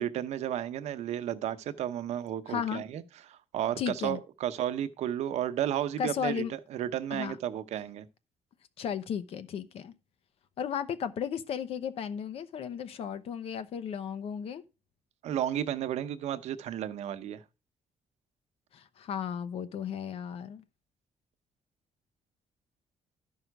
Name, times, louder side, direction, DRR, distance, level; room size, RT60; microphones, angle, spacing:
voice 1, 0.0-8.1 15.2-17.4, right 10 dB, 75° right, 0.8 m, -33 dB
voice 2, 2.5-2.8 3.8-4.2 6.0-6.5 7.1-7.4 8.8-9.9 10.6-14.6 18.7-20.6, left 8 dB, 60° left, 0.8 m, -34 dB
12.5 x 5.6 x 4.6 m
cardioid pair, 175°, 11 cm